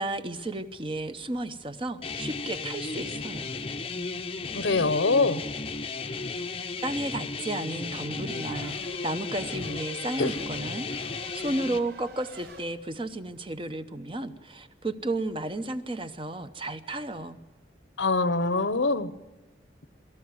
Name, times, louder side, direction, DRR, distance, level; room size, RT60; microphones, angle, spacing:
voice 1, 0.0-3.5 6.8-17.4, right 2 dB, 30° right, 10 dB, 0.8 m, -33 dB
sound 1, 2.0-11.8, left 4 dB, 30° left, 0.7 m, -34 dB
voice 2, 4.5-5.4 10.2-10.3 18.0-19.1, left 3 dB, 90° left, 14 dB, 1.0 m, -24 dB
Race car auto racing / Accelerating revving vroom / Mechanisms, 4.8-12.6, right 1 dB, 70° right, 4.0 m, -49 dB
23.0 x 13.5 x 9.6 m, 1.2 s
head